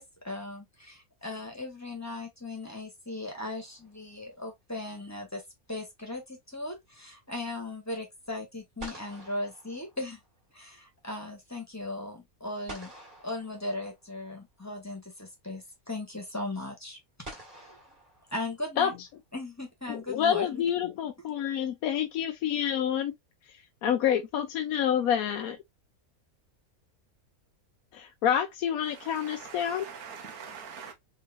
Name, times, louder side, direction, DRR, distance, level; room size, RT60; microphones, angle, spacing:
voice 1, 0.0-5.4 5.7-10.2 10.5-12.9 13.2-17.0 17.6-17.8 18.3-18.9 19.3-20.6, left 2 dB, 10° left, 1.3 m, -38 dB
sound 1, 3.3-4.2 8.3-8.4 8.8-10.5 12.7-14.3 15.6-15.7 17.2-18.9, right 1 dB, 35° right, 1.9 m, -48 dB
voice 2, 19.9-23.1 23.8-25.6 27.9-29.8, left 9 dB, 80° left, 1.1 m, -28 dB
voice 3, 28.9-30.9, right 6 dB, 85° right, 1.5 m, -43 dB
3.9 x 3.4 x 2.7 m
omnidirectional pair, 1.5 m